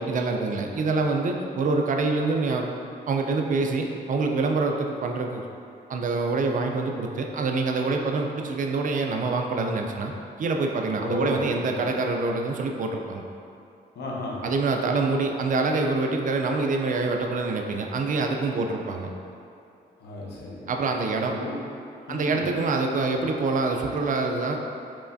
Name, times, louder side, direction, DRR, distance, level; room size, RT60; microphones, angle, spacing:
voice 1, 0.0-2.7 3.1-5.4 5.9-10.1 10.4-13.2 14.4-19.1 20.7-21.4 22.1-24.6, right 3 dB, 50° right, 3 dB, 0.4 m, -26 dB
voice 2, 11.0-11.8 14.0-14.4 20.0-20.6 21.3-21.6 22.1-22.4, left 1 dB, 70° left, -4 dB, 0.9 m, -33 dB
4.7 x 3.2 x 2.6 m, 2.6 s
cardioid pair, 85°, 18 cm